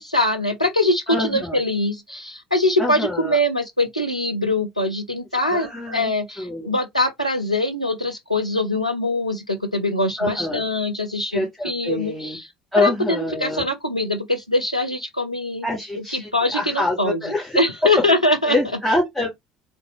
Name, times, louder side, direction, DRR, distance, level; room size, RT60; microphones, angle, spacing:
voice 1, 0.0-12.5 12.8-15.7 16.1-17.2 17.5-18.6, left 1 dB, 90° left, 0.6 m, -23 dB
voice 2, 1.1-1.6 2.8-3.4 5.3-6.1 6.4-6.7 10.2-10.6 11.3-12.4 12.7-13.6 15.6-17.6 18.5-19.3, left 2 dB, 5° left, 1.6 m, -25 dB
3.7 x 3.5 x 3.0 m
figure-of-eight pair, 60°, 4 cm